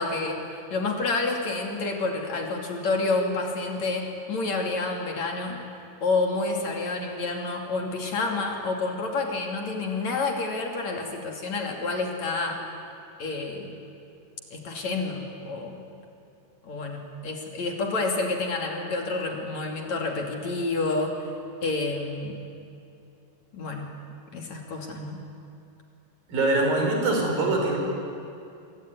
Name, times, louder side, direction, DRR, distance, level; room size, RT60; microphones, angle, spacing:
voice 1, 0.0-5.6 6.0-12.6 13.2-13.8 14.5-15.9 16.6-21.3 21.6-22.4 23.5-23.9 24.3-25.2, left 3 dB, 50° left, 1 dB, 3.7 m, -29 dB
voice 2, 26.3-27.8, right 2 dB, 70° right, 1 dB, 6.8 m, -23 dB
26.0 x 23.5 x 9.7 m, 2.6 s
omnidirectional pair, 4.3 m